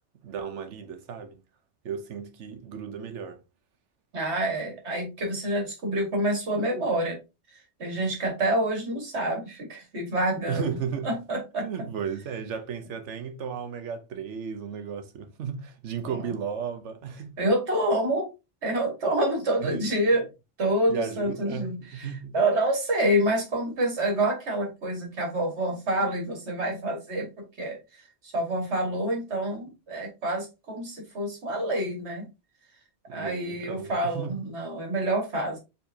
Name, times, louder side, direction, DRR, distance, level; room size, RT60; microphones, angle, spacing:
voice 1, 0.2-1.4 1.8-3.4 10.5-11.2 11.6-17.4 19.6-19.9 20.9-22.4 33.1-34.4, right 6 dB, 85° right, 1.2 m, -34 dB
voice 2, 4.1-7.2 7.8-10.7 11.0-11.7 17.4-18.3 18.6-20.2 20.6-22.1 22.3-27.3 27.6-27.8 28.2-32.3 33.1-35.6, right 1 dB, 70° right, 2.0 m, -27 dB
4.7 x 4.1 x 2.7 m
omnidirectional pair, 1.2 m